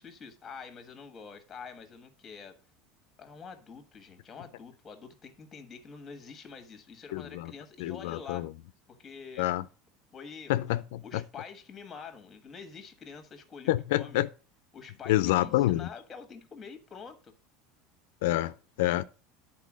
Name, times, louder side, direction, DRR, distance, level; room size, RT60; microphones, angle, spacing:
voice 1, 0.0-2.6 3.2-8.5 9.0-9.5 10.1-14.2 14.7-17.3, left 5 dB, 20° left, 1.5 m, -46 dB
voice 2, 7.1-7.5 7.8-8.5 9.4-9.6 10.5-11.2 13.7-14.3 15.1-15.9 18.2-19.0, left 15 dB, 80° left, 0.4 m, -27 dB
10.5 x 4.3 x 6.1 m
supercardioid pair, 160°, 0 cm